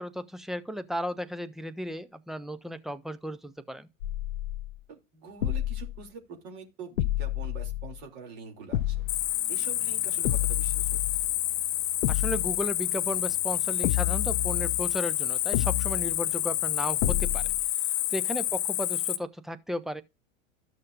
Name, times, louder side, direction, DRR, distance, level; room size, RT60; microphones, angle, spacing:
voice 1, 0.0-3.9 12.1-17.5 18.1-20.0, equal, ahead, 0.5 m, -35 dB
sound 1, 4.0-4.8 5.4-6.0 7.0-8.0 8.7-9.3 10.2-11.3 12.0-12.6 13.8-15.0 15.5-16.2 17.0-17.6, left 14 dB, 70° left, 0.6 m, -30 dB
voice 2, 4.9-9.0 9.5-11.0, right 6 dB, 55° right, 3.0 m, -45 dB
sound 2, 8.7-17.5, left 3 dB, 80° right, 2.6 m, -51 dB
Cricket, 9.1-19.2, left 14 dB, 45° left, 1.0 m, -29 dB
13.0 x 6.4 x 2.5 m
figure-of-eight pair, 90°, 40 cm